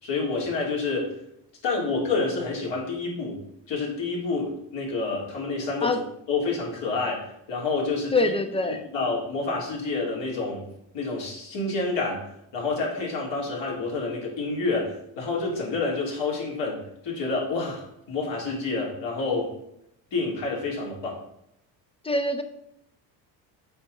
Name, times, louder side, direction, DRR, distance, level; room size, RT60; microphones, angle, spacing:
voice 1, 0.0-1.2 1.6-3.4 3.7-6.0 6.3-8.3 8.9-10.6 10.9-12.2 12.5-19.6 20.1-21.2, left 3 dB, 60° left, -3 dB, 3.0 m, -28 dB
voice 2, 8.1-8.8 22.0-22.4, left 2 dB, 10° left, 8 dB, 0.8 m, -24 dB
7.0 x 5.2 x 3.9 m, 0.77 s
supercardioid pair, 90°, 50 cm